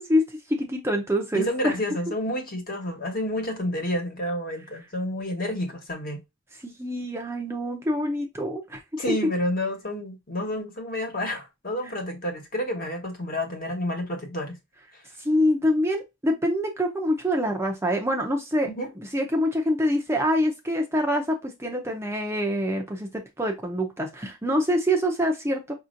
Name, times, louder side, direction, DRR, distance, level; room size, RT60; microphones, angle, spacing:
voice 1, 0.0-1.7 6.6-8.8 15.2-18.7 19.0-25.7, equal, 10° right, 0.6 m, -25 dB
voice 2, 1.3-6.2 9.0-14.6 14.9-15.0 18.7-18.9, left 1 dB, 45° left, 1.3 m, -30 dB
5.3 x 2.7 x 2.5 m
head